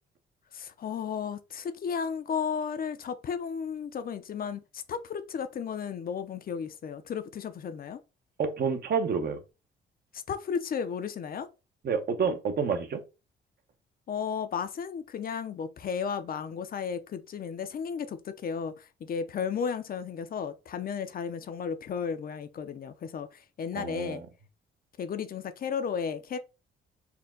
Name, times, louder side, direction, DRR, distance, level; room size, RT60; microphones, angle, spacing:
voice 1, 0.5-8.0 10.1-11.5 14.1-24.2 25.0-26.4, left 6 dB, 50° left, 0.5 m, -34 dB
voice 2, 8.4-9.4 11.8-13.0 23.7-24.2, right 5 dB, 55° right, 0.9 m, -29 dB
4.3 x 2.2 x 3.7 m
cardioid pair, 90°, 20 cm